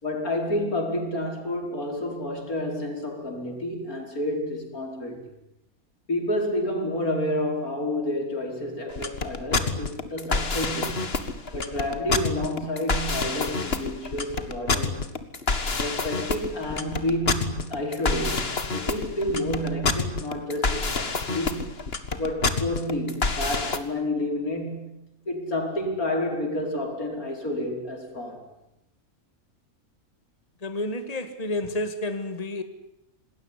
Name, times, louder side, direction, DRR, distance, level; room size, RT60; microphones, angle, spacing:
voice 1, 0.0-5.2 6.1-11.1 11.5-14.9 15.8-21.7 22.2-24.9 25.3-28.4, left 1 dB, 90° left, 3 dB, 5.3 m, -29 dB
sound 1, 8.9-23.8, left 4 dB, 45° left, 2.0 m, -27 dB
voice 2, 30.6-32.6, left 1 dB, 25° left, 9 dB, 2.1 m, -30 dB
27.0 x 20.0 x 10.0 m, 0.87 s
omnidirectional pair, 1.5 m